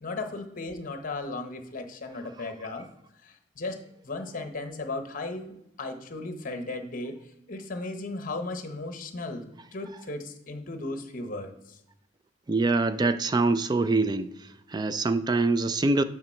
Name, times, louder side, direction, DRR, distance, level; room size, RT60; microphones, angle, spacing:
voice 1, 0.0-2.9 3.2-7.2 7.5-11.8, left 2 dB, 45° left, 0.9 m, -36 dB
voice 2, 12.5-14.3 14.7-16.0, right 3 dB, 20° right, 0.3 m, -24 dB
8.7 x 3.9 x 4.4 m
head